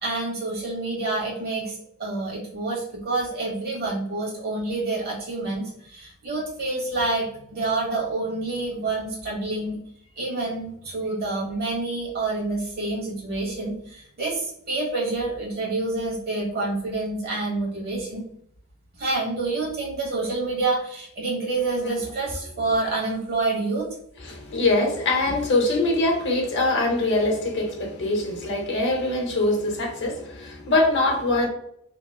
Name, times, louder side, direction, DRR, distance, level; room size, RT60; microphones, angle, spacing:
voice 1, 0.0-9.8 10.2-18.2 19.0-23.8, right 2 dB, 45° right, 1.2 m, -28 dB
voice 2, 24.2-31.5, left 2 dB, 55° left, 0.8 m, -23 dB
2.9 x 2.9 x 2.3 m
head